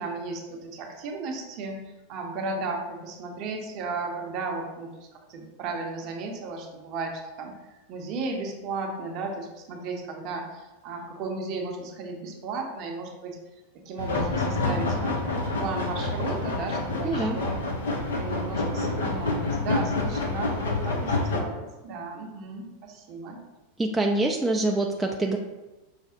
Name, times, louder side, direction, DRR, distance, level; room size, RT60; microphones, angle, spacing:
voice 1, 0.0-13.4 13.7-15.2 15.6-17.6 18.0-23.4, right 3 dB, 50° right, 2 dB, 0.7 m, -35 dB
sound 1, 14.0-21.4, left 2 dB, 75° left, 0.5 m, -28 dB
voice 2, 17.0-17.4 23.8-25.4, right 2 dB, 15° right, 1 dB, 0.3 m, -25 dB
5.7 x 2.0 x 2.5 m, 1.1 s
hypercardioid pair, 90°, 0 cm